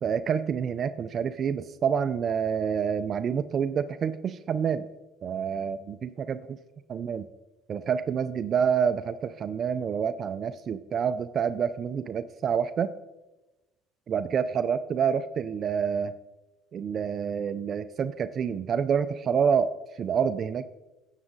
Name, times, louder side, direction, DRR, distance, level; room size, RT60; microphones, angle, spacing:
voice 1, 0.0-4.9 5.2-6.6 6.9-7.3 7.7-12.9 14.1-16.1 16.7-20.8, right 7 dB, 45° right, 13 dB, 0.4 m, -28 dB
9.4 x 8.2 x 3.9 m, 1.0 s
supercardioid pair, 80°, 0 cm